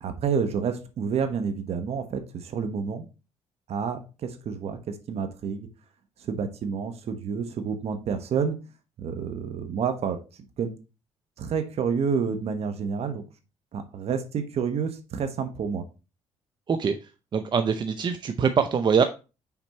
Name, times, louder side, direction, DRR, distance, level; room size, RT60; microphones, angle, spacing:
voice 1, 0.0-3.1 3.7-5.7 6.2-8.6 9.0-10.2 10.6-10.7 11.4-13.2 13.7-15.8, right 6 dB, 60° right, 9 dB, 1.1 m, -29 dB
voice 2, 17.3-19.0, right 6 dB, 40° right, 9 dB, 0.5 m, -23 dB
6.0 x 4.4 x 4.2 m, 0.31 s
cardioid pair, 100°, 12 cm